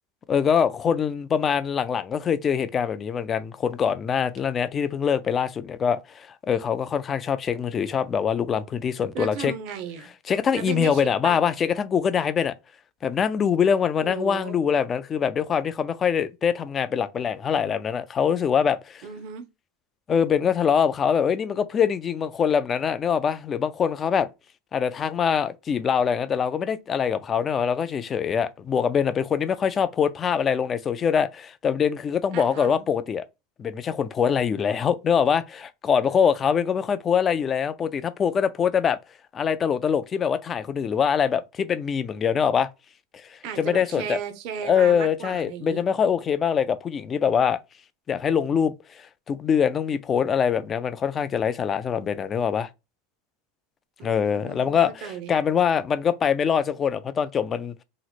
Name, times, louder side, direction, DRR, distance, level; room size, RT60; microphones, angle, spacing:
voice 1, 0.3-9.5 10.3-12.5 13.0-19.0 20.1-24.3 24.7-33.2 33.6-39.0 39.3-42.7 43.1-44.2 44.6-47.6 48.1-52.7 54.0-57.8, left 7 dB, 25° left, 0.3 m, -24 dB
voice 2, 9.1-10.1 10.5-11.4 14.0-14.6 19.0-19.5 32.3-32.9 43.4-45.8 54.0-55.3, right 8 dB, 55° right, 0.6 m, -35 dB
3.0 x 2.0 x 4.0 m
supercardioid pair, 135°, 0 cm